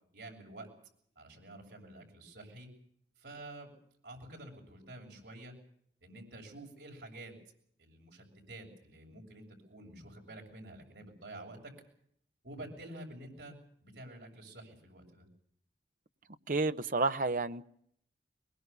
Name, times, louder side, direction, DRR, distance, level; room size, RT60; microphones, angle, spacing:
voice 1, 0.1-0.7 1.2-2.7 3.2-3.7 4.0-5.5 6.0-7.4 7.8-11.7 12.4-13.6 13.8-15.3, right 1 dB, 75° right, 1 dB, 7.4 m, -49 dB
voice 2, 16.5-17.7, right 3 dB, 50° right, 11 dB, 0.9 m, -30 dB
22.5 x 22.0 x 6.8 m, 0.69 s
head